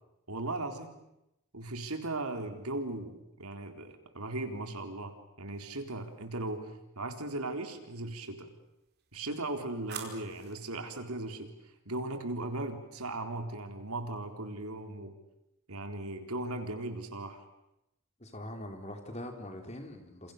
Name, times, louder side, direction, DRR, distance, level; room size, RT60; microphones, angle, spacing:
voice 1, 0.3-0.9 1.5-8.5 9.1-11.5 11.9-15.2 15.7-17.4, right 2 dB, 85° right, 6 dB, 4.0 m, -37 dB
sound 1, 5.5-6.2 8.6-10.7, right 7 dB, 45° right, 4.9 m, -48 dB
voice 2, 18.2-20.3, left 1 dB, 30° left, 4 dB, 4.2 m, -42 dB
28.5 x 28.0 x 6.8 m, 0.86 s
head